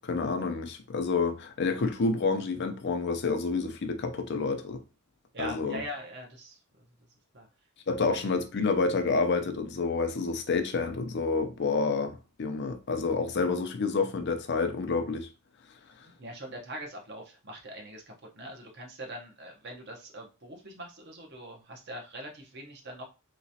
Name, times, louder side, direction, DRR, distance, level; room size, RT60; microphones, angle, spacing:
voice 1, 0.0-4.8 5.4-5.8 7.9-15.3, left 4 dB, 50° left, 0.5 m, -29 dB
voice 2, 5.3-6.8 7.3-7.5 8.1-8.3 16.2-18.0 18.3-23.0, equal, 50° right, 0.9 m, -42 dB
3.2 x 3.0 x 2.7 m
head